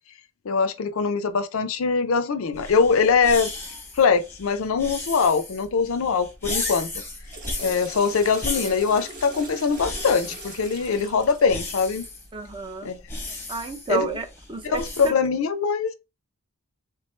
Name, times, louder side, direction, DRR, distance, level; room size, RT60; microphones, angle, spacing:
voice 1, 0.5-3.5 3.9-6.9 7.6-12.1 12.8-13.0 13.9-14.2 14.6-15.9, left 5 dB, 65° left, 0.4 m, -22 dB
sound 1, 2.5-15.1, left 2 dB, 10° left, 0.8 m, -35 dB
Water / Toilet flush, 7.0-12.3, right 2 dB, 40° right, 0.9 m, -41 dB
voice 2, 12.3-12.9 13.5-15.1, right 4 dB, 20° right, 0.5 m, -30 dB
3.4 x 3.0 x 3.2 m
head